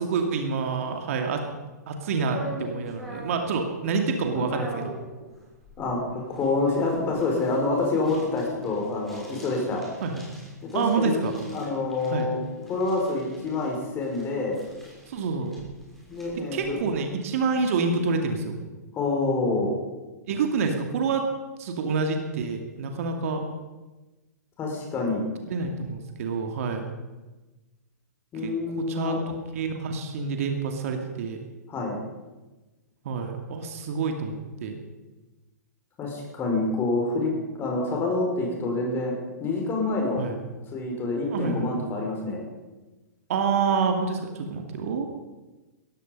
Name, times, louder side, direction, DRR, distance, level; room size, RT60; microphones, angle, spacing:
voice 1, 0.0-1.4 1.9-4.9 10.0-10.2 10.7-11.3 12.1-12.3 15.1-15.5 16.3-18.6 20.3-21.3 21.6-23.4 25.5-26.8 28.4-31.4 33.0-34.3 34.6-34.8 40.2-40.4 41.3-41.7 43.3-45.1, right 4 dB, 55° right, 4 dB, 2.3 m, -27 dB
sound 1, 2.3-17.0, left 1 dB, ahead, 6.1 m, -43 dB
voice 2, 6.3-9.8 10.7-11.2 11.5-12.4 12.7-14.6 16.1-16.8 18.9-19.7 24.6-25.3 28.3-29.2 31.7-32.0 36.0-39.2 39.4-40.2 40.7-42.4, left 3 dB, 25° left, 0 dB, 5.6 m, -27 dB
17.5 x 15.0 x 5.4 m, 1.2 s
figure-of-eight pair, 115°, 9 cm